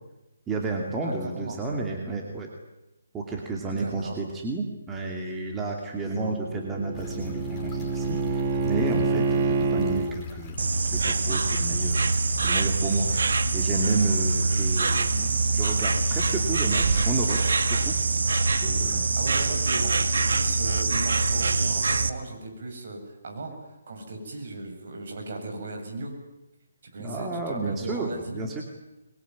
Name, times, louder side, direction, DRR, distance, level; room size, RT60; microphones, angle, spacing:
voice 1, 0.5-2.5 3.1-10.6 10.9-12.0 12.4-17.9 18.6-19.1 27.0-28.6, right 3 dB, 10° right, 0 dB, 2.5 m, -31 dB
voice 2, 1.0-1.6 3.8-4.2 19.1-23.5 23.9-26.1 26.9-28.6, right 2 dB, 55° right, 3 dB, 7.9 m, -37 dB
Bowed string instrument, 6.1-10.1, right 4 dB, 25° right, 1.7 m, -27 dB
sound 1, 6.9-17.6, left 5 dB, 15° left, 4.1 m, -43 dB
Insect, 10.6-22.1, right 3 dB, 75° right, 1.9 m, -24 dB
25.5 x 22.5 x 9.6 m, 0.94 s
hypercardioid pair, 170°, 0 cm